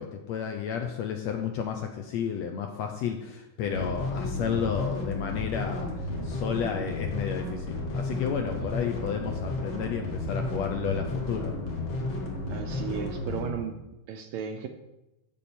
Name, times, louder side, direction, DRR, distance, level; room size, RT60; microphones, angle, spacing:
voice 1, 0.0-11.5, left 7 dB, 80° left, 4 dB, 1.6 m, -32 dB
sound 1, 3.6-13.5, left 2 dB, 45° left, 1.6 m, -33 dB
voice 2, 12.5-14.7, right 7 dB, 80° right, 6 dB, 1.7 m, -35 dB
15.5 x 5.4 x 4.3 m, 0.96 s
omnidirectional pair, 3.7 m